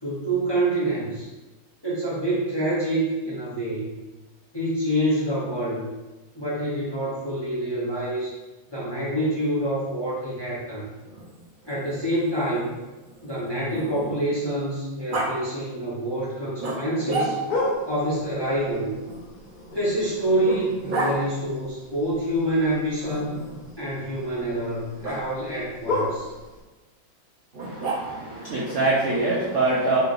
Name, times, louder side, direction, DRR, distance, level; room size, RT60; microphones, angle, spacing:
voice 1, 0.0-1.3 1.8-4.0 4.5-5.9 6.3-8.3 8.7-10.9 11.6-12.7 13.2-17.4 17.9-18.9 19.7-23.4 23.8-26.3, right 1 dB, 30° left, -8 dB, 0.4 m, -26 dB
Growling, 11.0-14.4 15.1-15.3 16.6-17.7 19.0-21.2 23.0-23.7 25.0-25.2 27.5-28.4, right 2 dB, 80° right, 0.4 m, -32 dB
sound 1, 17.5-26.6, left 2 dB, 65° left, 1.1 m, -35 dB
voice 2, 27.6-30.0, right 2 dB, 60° right, -6 dB, 0.8 m, -24 dB
4.5 x 3.3 x 2.5 m, 1.1 s
omnidirectional pair, 2.0 m